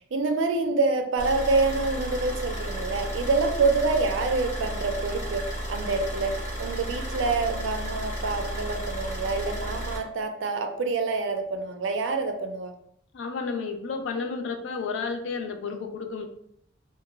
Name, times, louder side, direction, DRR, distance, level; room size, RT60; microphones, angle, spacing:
voice 1, 0.1-12.7 15.6-15.8, right 3 dB, 75° right, 5 dB, 0.4 m, -27 dB
Car / Idling, 1.2-10.0, equal, 40° left, 0.9 m, -33 dB
voice 2, 13.1-16.3, left 4 dB, 75° left, 6 dB, 0.3 m, -31 dB
2.1 x 2.0 x 3.2 m, 0.71 s
head